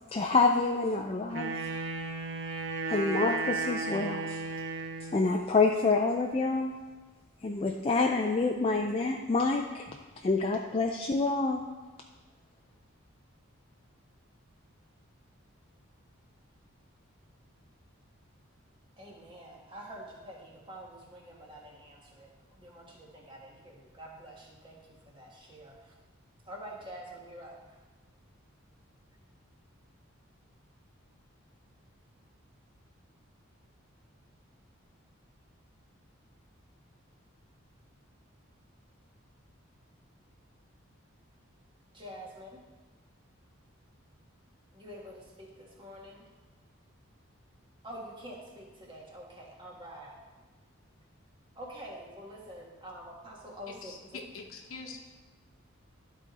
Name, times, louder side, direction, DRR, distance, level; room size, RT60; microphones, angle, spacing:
voice 1, 0.1-1.5 2.9-4.4 5.1-6.7 7.4-9.9 10.2-11.6, left 3 dB, 25° left, 2 dB, 0.3 m, -27 dB
Wind instrument woodwind instrument, 1.3-5.3, right 3 dB, 55° right, 0.8 m, -34 dB
voice 2, 19.0-24.8 25.1-25.9 26.5-27.8 41.9-42.6 44.7-46.2 47.8-50.2 51.5-54.2, equal, 25° right, -2 dB, 1.4 m, -47 dB
voice 3, 53.7-55.0, left 4 dB, 75° left, 4 dB, 0.9 m, -44 dB
12.0 x 4.1 x 4.1 m, 1.3 s
head